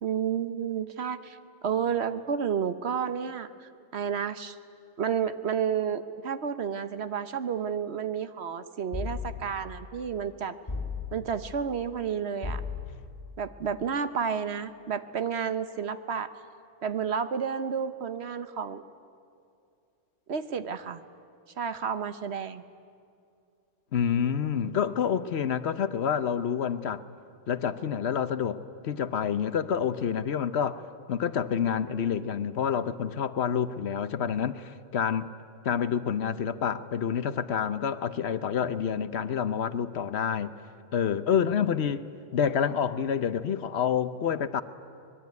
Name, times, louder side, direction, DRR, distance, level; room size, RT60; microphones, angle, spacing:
voice 1, 0.0-1.4 1.6-4.6 5.0-10.6 11.1-12.6 13.4-16.3 16.8-18.8 20.3-21.0 21.6-22.6, right 7 dB, 60° right, 11 dB, 1.1 m, -31 dB
sound 1, 8.9-9.7 10.7-11.4 12.4-13.2, left 4 dB, 20° left, 4.1 m, -35 dB
voice 2, 23.9-27.0 27.5-30.8 31.1-35.3 35.6-40.5 40.9-42.0 42.3-44.6, left 8 dB, 65° left, 13 dB, 1.0 m, -28 dB
24.5 x 21.0 x 9.5 m, 2.4 s
omnidirectional pair, 1.3 m